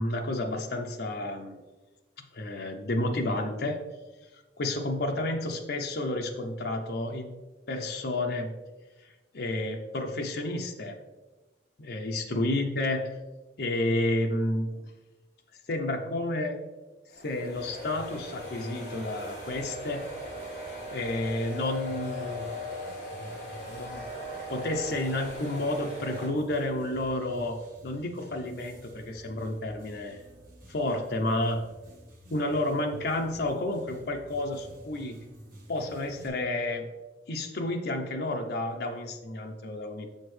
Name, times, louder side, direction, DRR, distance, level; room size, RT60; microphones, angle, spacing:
voice 1, 0.0-1.6 2.3-3.8 4.6-7.3 7.7-8.6 9.3-11.0 11.8-13.2 13.6-14.7 15.7-16.6 17.2-20.1 20.9-22.5 23.2-23.4 23.7-24.1 24.5-30.2 30.7-31.7 32.3-35.2 35.7-36.9 37.3-40.1, left 1 dB, 60° left, 2 dB, 0.6 m, -31 dB
sound 1, 17.1-26.3, left 1 dB, 40° left, 1.8 m, -39 dB
sound 2, 17.5-36.3, equal, 50° right, 1.4 m, -51 dB
6.9 x 6.5 x 3.2 m, 1.2 s
head